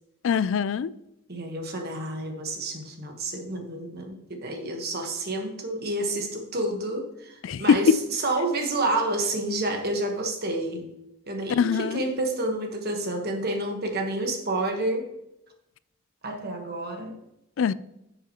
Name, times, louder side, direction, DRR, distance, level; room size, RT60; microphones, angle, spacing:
voice 1, 0.2-0.9 7.4-8.0 11.5-12.0 17.6-17.7, left 6 dB, 60° left, 0.3 m, -22 dB
voice 2, 1.3-10.9 11.3-15.1 16.2-17.1, right 2 dB, 50° right, 1.3 m, -29 dB
10.0 x 7.1 x 3.0 m
head